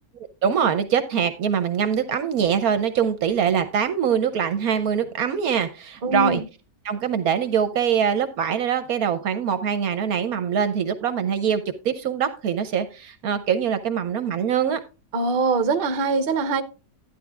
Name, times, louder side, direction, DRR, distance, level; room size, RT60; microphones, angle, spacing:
voice 1, 0.4-6.4 6.8-14.8, right 8 dB, 65° right, 1.1 m, -23 dB
voice 2, 6.0-6.4 15.1-16.6, right 3 dB, 40° right, 0.7 m, -22 dB
12.5 x 9.9 x 2.3 m
omnidirectional pair, 1.9 m